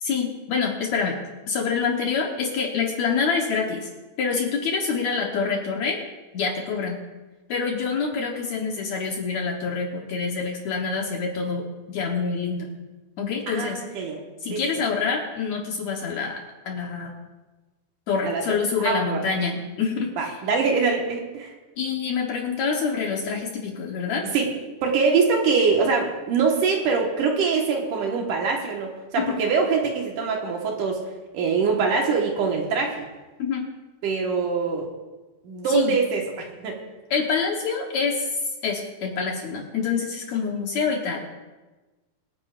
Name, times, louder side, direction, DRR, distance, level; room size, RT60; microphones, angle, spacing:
voice 1, 0.0-1.2 1.5-3.9 4.2-6.0 6.3-7.0 7.5-12.7 13.2-13.8 14.4-16.4 16.7-17.1 18.1-20.4 21.8-24.2 29.2-29.4 33.4-33.7 35.7-36.0 37.1-38.3 38.6-41.2, left 5 dB, 65° left, 0 dB, 2.0 m, -26 dB
voice 2, 13.5-14.2 14.5-14.6 18.2-18.4 18.8-19.2 20.2-21.5 24.3-24.5 24.8-31.0 31.3-32.9 34.0-34.9 35.4-36.8, right 5 dB, 65° right, 1 dB, 2.7 m, -23 dB
24.0 x 9.6 x 2.5 m, 1.2 s
omnidirectional pair, 4.1 m